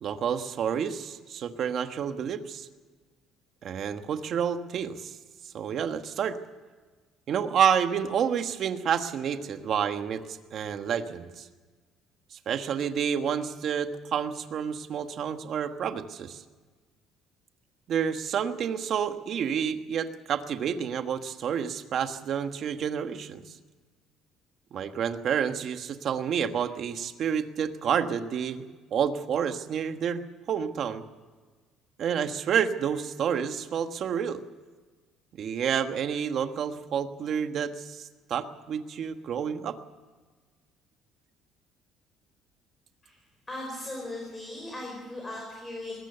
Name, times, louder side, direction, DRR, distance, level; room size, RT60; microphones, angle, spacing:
voice 1, 0.0-2.7 3.6-5.1 5.5-6.4 7.3-11.5 12.3-16.4 17.9-23.4 24.7-28.7 28.9-31.0 32.0-34.4 35.4-39.8, right 8 dB, 45° right, 8 dB, 1.4 m, -29 dB
voice 2, 43.5-45.9, left 1 dB, 15° left, -1 dB, 5.2 m, -38 dB
21.0 x 19.0 x 6.9 m, 1.4 s
cardioid pair, 165°, 0 cm